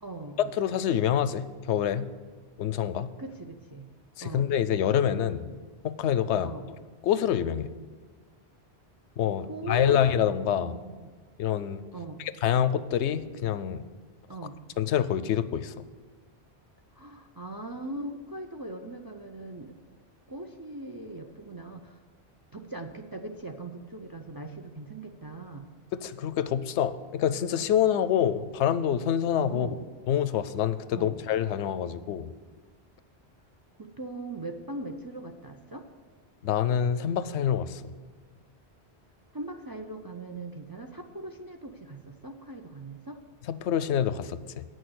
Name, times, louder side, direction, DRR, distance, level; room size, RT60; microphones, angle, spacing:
voice 1, 0.0-0.4 3.2-3.9 4.2-4.5 6.4-6.7 9.5-10.0 10.6-11.1 11.9-12.2 14.3-14.6 16.9-19.7 20.3-22.0 22.5-25.7 29.5-29.8 30.9-31.2 33.8-35.9 39.3-43.2, right 2 dB, 30° right, 4 dB, 0.4 m, -40 dB
voice 2, 0.5-2.1 2.6-3.1 4.2-5.5 5.8-6.5 7.0-7.7 9.2-10.8 11.4-11.8 12.2-13.8 14.8-15.8 25.9-29.7 30.1-32.3 36.4-37.8 43.5-44.6, left 9 dB, 90° left, 14 dB, 0.9 m, -26 dB
9.2 x 6.4 x 7.9 m, 1.4 s
omnidirectional pair, 1.1 m